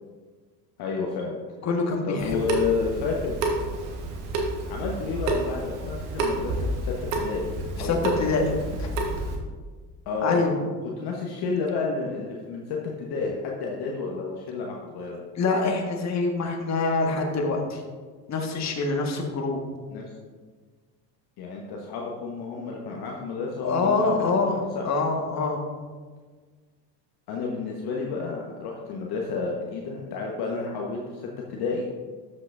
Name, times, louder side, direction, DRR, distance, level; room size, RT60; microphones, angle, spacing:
voice 1, 0.8-1.4 2.0-3.3 4.6-7.5 7.8-8.6 10.0-10.4 10.8-15.2 19.9-20.1 21.4-24.9 27.3-31.9, left 4 dB, 50° left, -1 dB, 1.3 m, -31 dB
voice 2, 1.6-2.4 7.8-8.4 8.8-8.9 10.2-10.6 15.3-17.8 18.3-19.6 23.6-24.6 24.8-25.6, left 3 dB, 35° left, 2 dB, 1.6 m, -25 dB
Water tap faucet / Sink (filling or washing) / Drip, 2.2-9.4, right 2 dB, 65° right, 1.5 m, -30 dB
13.5 x 6.0 x 2.6 m, 1.5 s
figure-of-eight pair, 65°, 50 cm